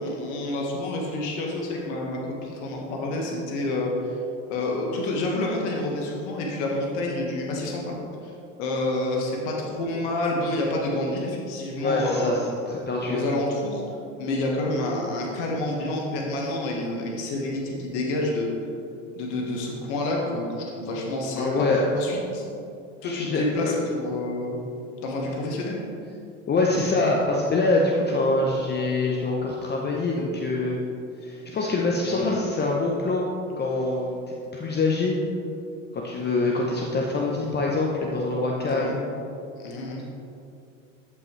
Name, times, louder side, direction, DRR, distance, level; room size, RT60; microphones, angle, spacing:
voice 1, 0.0-4.2 4.5-8.3 8.6-12.3 13.1-13.8 14.2-18.5 19.1-21.7 21.9-22.4 23.0-24.6 25.0-25.8 32.0-32.4 38.6-39.0 39.6-40.0, left 2 dB, 65° left, -1 dB, 1.6 m, -28 dB
voice 2, 11.8-13.3 21.4-21.8 23.0-23.7 26.5-30.8 31.2-33.3 33.6-35.1 35.9-39.0, left 2 dB, 25° left, -1 dB, 0.9 m, -25 dB
11.5 x 5.5 x 3.3 m, 2.6 s
hypercardioid pair, 85°, 38 cm